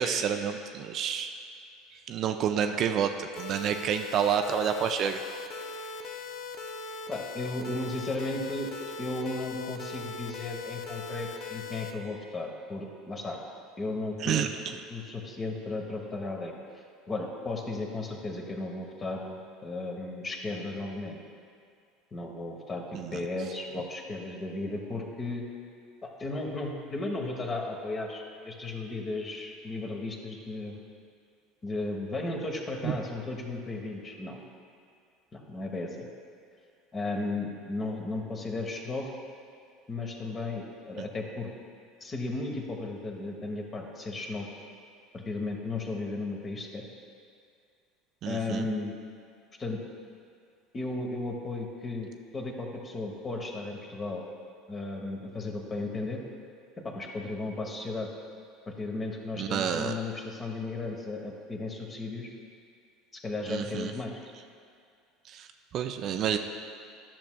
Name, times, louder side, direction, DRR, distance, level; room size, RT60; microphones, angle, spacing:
voice 1, 0.0-1.3 2.1-5.2 14.2-14.5 22.9-23.2 32.8-33.0 41.0-41.1 48.2-48.7 59.3-59.9 63.5-63.9 65.3-65.5 65.7-66.4, right 8 dB, 50° right, 6 dB, 0.3 m, -29 dB
sound 1, 3.4-11.9, left 4 dB, 60° left, 0.5 m, -40 dB
voice 2, 7.1-8.7 9.0-13.4 13.8-14.5 14.9-16.5 17.1-21.2 22.1-22.8 23.1-25.5 26.0-30.8 31.6-34.4 35.3-36.1 36.9-39.1 39.9-41.5 42.0-44.5 45.1-46.8 48.3-48.9 49.6-49.8 50.7-52.1 52.3-54.2 54.7-56.2 56.8-58.1 58.7-62.3 63.1-64.1, left 2 dB, 30° left, 1 dB, 1.0 m, -35 dB
10.5 x 6.0 x 2.3 m, 2.3 s
hypercardioid pair, 75°, 0 cm